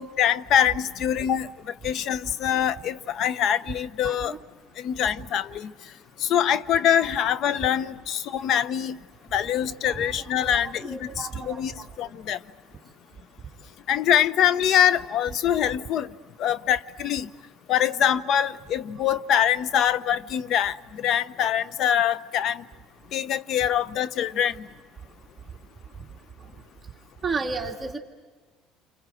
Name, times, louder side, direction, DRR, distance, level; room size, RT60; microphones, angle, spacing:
voice 1, 0.0-4.3 4.8-5.7 6.2-9.0 9.3-11.7 12.0-12.4 13.9-16.1 16.4-17.3 17.7-22.6 23.1-24.7, left 9 dB, 60° left, 0.8 m, -24 dB
voice 2, 4.0-4.4 9.6-12.1 15.6-15.7 26.4-26.5 27.2-28.0, right 4 dB, 20° right, 1.9 m, -34 dB
29.0 x 25.0 x 7.7 m
supercardioid pair, 100°, 0 cm